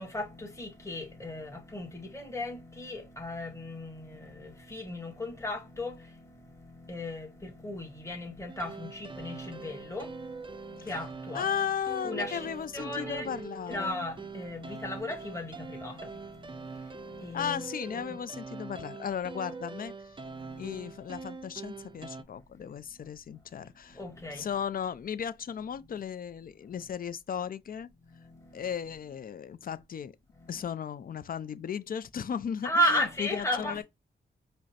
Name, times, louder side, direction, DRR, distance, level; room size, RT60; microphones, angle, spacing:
voice 1, 0.0-11.5 12.0-17.6 17.9-18.2 20.2-20.8 21.9-22.0 22.6-22.7 23.9-24.6 26.7-26.9 28.1-28.7 30.4-30.7 32.6-33.8, equal, 15° left, 1.3 m, -36 dB
sound 1, 8.5-22.2, right 4 dB, 25° right, 0.4 m, -43 dB
voice 2, 11.3-14.1 17.3-20.2 20.6-24.0 24.3-27.9 28.5-30.1 30.5-33.8, left 8 dB, 50° left, 0.4 m, -36 dB
4.9 x 2.0 x 2.8 m
cardioid pair, 80°, 18 cm